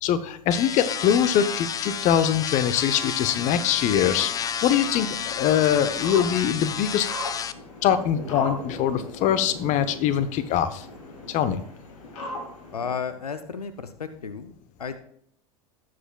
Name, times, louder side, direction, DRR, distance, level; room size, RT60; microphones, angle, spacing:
voice 1, 0.0-7.1 7.8-10.8 11.3-11.6, left 9 dB, 40° left, 12 dB, 0.8 m, -23 dB
sound 1, 0.5-7.5, left 8 dB, 20° left, 0.4 m, -31 dB
sound 2, 3.1-12.9, left 1 dB, 70° left, 2.6 m, -39 dB
voice 2, 12.7-14.5 14.8-15.0, left 6 dB, 85° left, 11 dB, 0.6 m, -33 dB
17.0 x 7.6 x 2.3 m, 0.66 s
figure-of-eight pair, 85°, 19 cm